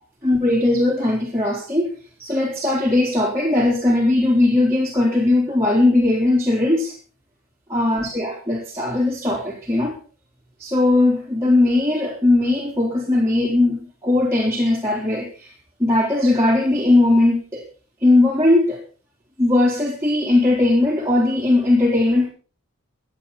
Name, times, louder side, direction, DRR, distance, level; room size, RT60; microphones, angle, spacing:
voice 1, 0.2-1.9 2.2-6.9 7.7-9.9 10.6-15.5 15.8-17.7 18.0-18.8 19.4-22.3, left 2 dB, 10° right, -5 dB, 4.0 m, -19 dB
25.0 x 8.9 x 4.2 m, 0.37 s
head